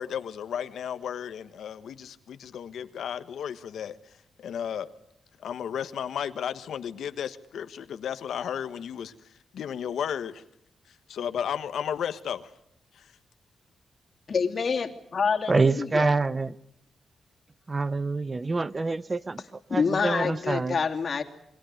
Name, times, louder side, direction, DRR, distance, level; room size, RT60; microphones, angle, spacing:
voice 1, 0.0-4.0 4.4-4.9 5.4-9.1 9.5-10.4 11.1-12.5 12.9-13.1, left 8 dB, 85° left, 1.3 m, -33 dB
voice 2, 14.3-16.1 19.7-21.2, left 5 dB, 50° left, 2.7 m, -27 dB
voice 3, 15.5-16.5 17.7-19.4 19.7-20.8, right 3 dB, 25° right, 0.8 m, -26 dB
28.5 x 22.5 x 6.5 m
cardioid pair, 110°, 0 cm